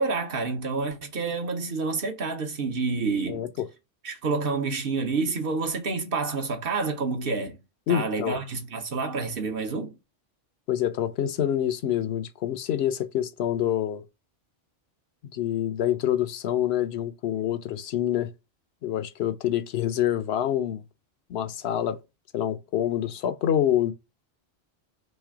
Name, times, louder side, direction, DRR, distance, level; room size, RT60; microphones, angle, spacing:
voice 1, 0.0-3.5 4.0-7.6 7.9-9.9, right 4 dB, 55° right, 1.0 m, -28 dB
voice 2, 3.3-3.7 7.9-8.4 10.7-14.0 15.2-18.3 18.8-20.8 21.3-22.0 22.3-23.9, left 11 dB, 70° left, 0.8 m, -26 dB
3.2 x 3.1 x 4.7 m
omnidirectional pair, 1.2 m